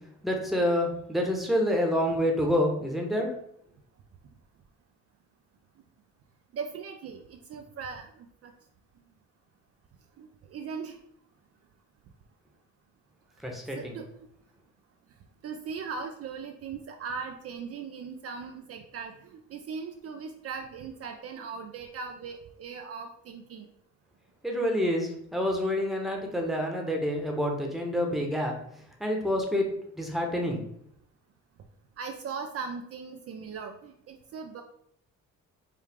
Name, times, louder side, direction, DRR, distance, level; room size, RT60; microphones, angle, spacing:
voice 1, 0.2-3.3 13.4-13.9 24.4-28.5 29.0-29.7 30.0-30.6, equal, ahead, 1 dB, 0.9 m, -27 dB
voice 2, 6.5-8.5 10.2-11.0 13.7-14.3 15.4-23.7 32.0-34.6, right 5 dB, 50° right, 4 dB, 0.5 m, -39 dB
4.8 x 2.3 x 3.5 m, 0.69 s
cardioid pair, 90°, 30 cm